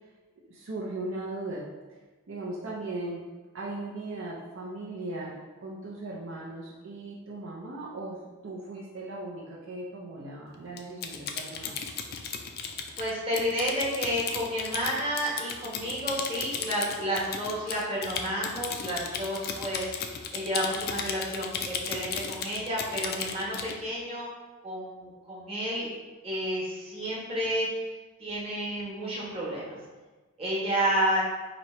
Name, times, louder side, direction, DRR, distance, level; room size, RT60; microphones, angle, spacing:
voice 1, 0.5-1.7 2.3-3.3 3.5-11.8, right 2 dB, 60° right, -4 dB, 0.5 m, -38 dB
Typing, 10.8-23.8, left 6 dB, 45° left, 0.3 m, -35 dB
voice 2, 13.0-24.3 24.6-25.9 26.2-27.7 28.2-29.8 30.4-31.2, equal, 30° right, -6 dB, 1.1 m, -31 dB
3.0 x 2.8 x 4.2 m, 1.2 s
head